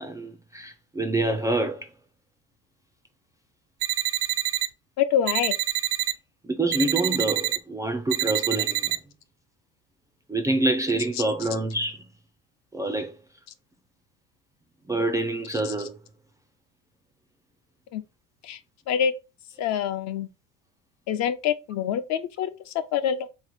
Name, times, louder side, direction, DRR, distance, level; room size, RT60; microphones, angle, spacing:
voice 1, 0.0-1.9 6.4-9.0 10.3-12.1 12.7-13.1 14.9-16.0, right 2 dB, 10° right, 0.3 m, -26 dB
sound 1, 3.8-4.7 5.3-6.1 6.7-7.6 8.1-9.0, right 17 dB, 70° right, 0.5 m, -26 dB
voice 2, 5.0-5.5 15.5-15.7 17.9-18.0 18.4-18.6 18.9-19.1 19.6-20.3 21.1-23.3, left 9 dB, 55° left, 0.6 m, -26 dB
3.6 x 3.1 x 4.0 m
cardioid pair, 140°, 33 cm